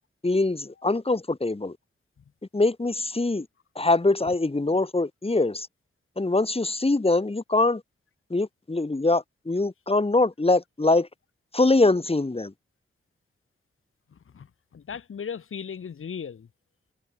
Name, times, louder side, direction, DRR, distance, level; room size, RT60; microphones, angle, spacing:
voice 1, 0.2-1.7 2.5-3.5 3.8-5.7 6.2-7.8 8.3-11.1 11.5-12.5, left 2 dB, 30° left, 5.7 m, -23 dB
voice 2, 14.1-16.5, left 7 dB, 85° left, 5.9 m, -37 dB
cardioid pair, 65°, 21 cm